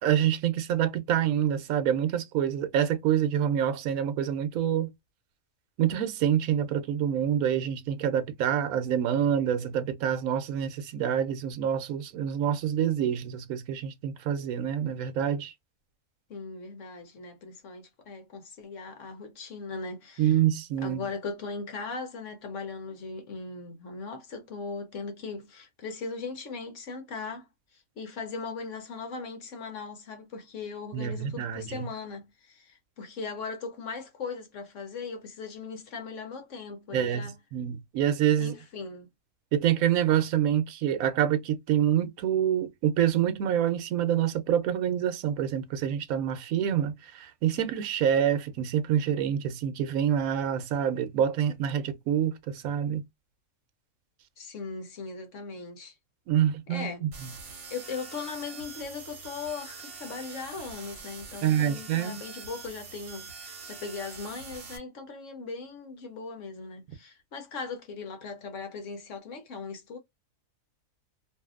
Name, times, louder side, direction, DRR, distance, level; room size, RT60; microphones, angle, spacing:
voice 1, 0.0-4.9 5.8-15.5 20.2-21.1 30.9-31.9 36.9-38.5 39.5-53.0 56.3-57.3 61.4-62.2, right 9 dB, 85° right, 1.1 m, -27 dB
voice 2, 16.3-20.4 20.8-27.5 27.7-37.3 38.4-39.1 54.4-55.9 56.7-57.1 57.7-70.0, left 4 dB, 65° left, 1.1 m, -39 dB
sound 1, 57.1-64.8, right 5 dB, 55° right, 1.1 m, -44 dB
2.6 x 2.6 x 2.4 m
omnidirectional pair, 1.4 m